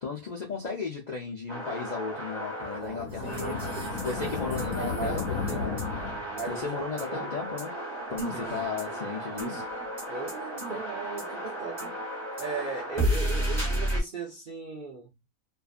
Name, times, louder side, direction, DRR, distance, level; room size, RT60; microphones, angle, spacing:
voice 1, 0.0-3.7 4.0-5.8 6.5-7.8 8.1-9.6, left 5 dB, 55° left, 0.4 m, -35 dB
sound 1, 1.5-14.0, right 1 dB, 20° right, 0.9 m, -33 dB
sound 2, 2.8-6.6, left 5 dB, 75° left, 1.1 m, -34 dB
voice 2, 3.2-5.9 6.3-6.8 7.1-7.4 8.3-8.7 10.1-11.9 12.4-15.2, right 4 dB, 60° right, 0.5 m, -38 dB
2.7 x 2.4 x 2.4 m
omnidirectional pair, 1.6 m